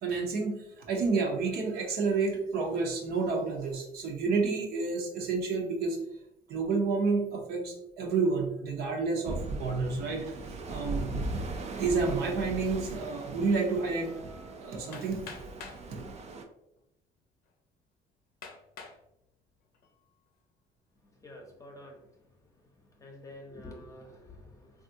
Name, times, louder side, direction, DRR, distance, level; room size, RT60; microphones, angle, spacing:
voice 1, 0.0-6.0 6.5-10.3 10.6-11.1 11.5-15.3, right 4 dB, 70° right, 1 dB, 0.8 m, -30 dB
sound 1, 9.2-16.4, right 2 dB, 40° right, 0.5 m, -38 dB
Hammer, 14.9-15.9 16.8-16.9 17.5-17.6 18.4-19.0 19.6-20.0, left 5 dB, 60° left, 0.6 m, -46 dB
voice 2, 21.2-22.0 23.0-24.7, left 1 dB, 20° left, 1 dB, 0.7 m, -47 dB
3.4 x 2.4 x 2.7 m, 0.83 s
cardioid pair, 110°, 17 cm